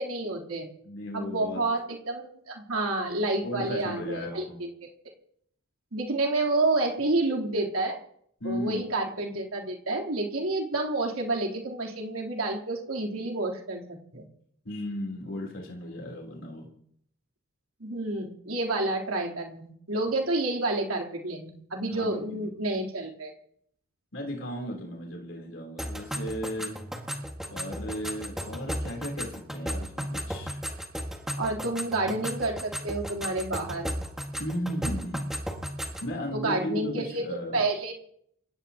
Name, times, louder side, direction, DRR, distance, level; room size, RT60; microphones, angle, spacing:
voice 1, 0.0-0.7 1.1-4.9 5.9-8.0 8.4-13.8 14.1-14.2 17.8-23.3 31.4-33.9 36.3-37.2 37.5-37.9, right 2 dB, 80° right, 0 dB, 3.3 m, -29 dB
voice 2, 0.8-1.6 3.4-4.6 8.4-8.8 14.6-16.7 21.9-22.5 24.1-26.8 27.5-30.6 34.4-35.3 36.0-37.6, equal, 60° left, 0 dB, 3.4 m, -35 dB
sound 1, 25.8-36.1, equal, ahead, 1.7 m, -35 dB
28.0 x 16.0 x 2.9 m, 0.69 s
head